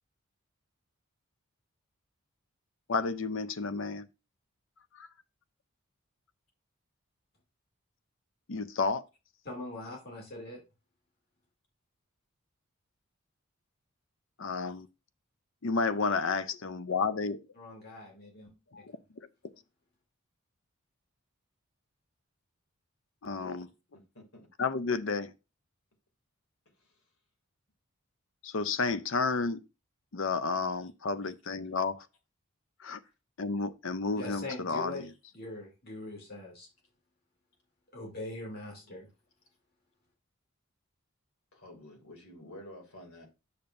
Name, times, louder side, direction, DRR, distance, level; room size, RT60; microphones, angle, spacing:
voice 1, 2.9-4.1 5.0-5.1 8.5-9.0 14.4-14.9 15.6-17.4 18.7-18.9 23.2-23.7 24.6-25.3 28.4-29.6 30.1-32.1 32.8-33.0 33.4-35.1, left 4 dB, 65° left, 0.6 m, -31 dB
voice 2, 9.4-10.6 17.6-18.5 34.1-35.0 35.3-36.7 37.9-39.1, left 2 dB, 45° left, 2.6 m, -42 dB
voice 3, 23.9-24.5 26.8-27.0 31.1-31.3 33.0-33.1 38.8-39.1 41.5-43.3, left 1 dB, 85° left, 2.7 m, -51 dB
8.7 x 6.6 x 2.6 m
head